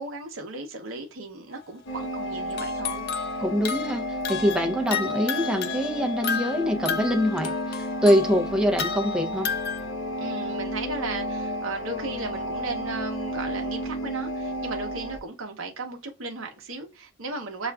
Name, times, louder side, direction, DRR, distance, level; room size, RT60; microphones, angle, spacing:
voice 1, 0.0-3.1 10.2-17.7, right 3 dB, 65° right, 0.7 m, -35 dB
sound 1, 1.5-1.7 2.5-9.9, left 7 dB, 45° left, 0.4 m, -33 dB
sound 2, 1.9-15.2, equal, 65° left, 0.8 m, -32 dB
voice 2, 3.4-9.5, equal, 5° right, 0.5 m, -24 dB
6.8 x 2.4 x 2.3 m
head